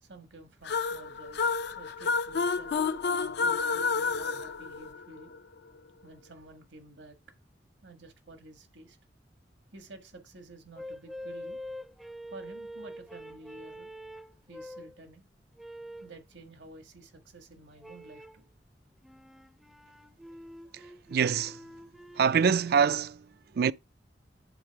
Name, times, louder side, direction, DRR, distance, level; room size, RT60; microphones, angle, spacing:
voice 1, 0.0-2.9 3.4-5.3 6.0-7.2 7.8-9.0 9.7-11.6 12.3-13.9 14.5-15.2 16.0-18.4, right 2 dB, 80° right, 1.7 m, -51 dB
sound 1, 0.6-5.4, left 4 dB, 65° left, 0.4 m, -30 dB
sound 2, 10.8-15.0 15.6-16.2 17.8-18.5 19.0-23.0, equal, ahead, 0.5 m, -45 dB
voice 2, 21.1-21.6 22.2-23.2 23.5-23.7, right 6 dB, 60° right, 0.4 m, -25 dB
10.5 x 4.0 x 4.7 m
head